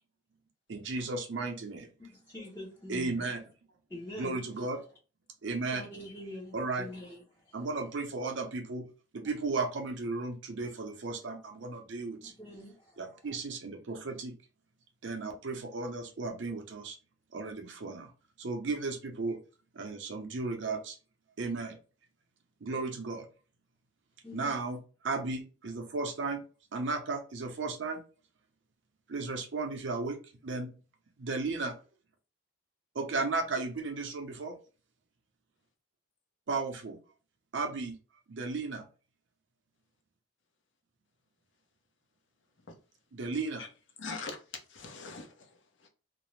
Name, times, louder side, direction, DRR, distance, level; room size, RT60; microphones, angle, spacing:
voice 1, 0.7-1.9 2.9-3.4 4.2-4.8 5.4-5.8 6.5-6.9 7.5-8.9 9.1-12.3 13.0-14.3 15.0-17.0 17.3-18.1 18.4-19.4 19.7-21.0 21.4-21.8 22.6-23.3 24.3-24.8 25.0-26.4 26.7-28.0 29.1-30.2 30.4-30.7 31.2-31.7 32.9-34.6 36.5-37.0 37.5-38.0 38.3-38.9 43.1-43.7, right 3 dB, 70° right, 0.6 m, -34 dB
voice 2, 2.0-3.5 3.9-4.6 5.7-7.7 12.2-13.4 24.2-24.6, left 1 dB, 10° left, 0.5 m, -45 dB
voice 3, 44.0-44.4 44.7-45.9, left 4 dB, 75° left, 0.6 m, -42 dB
2.5 x 2.0 x 3.0 m
head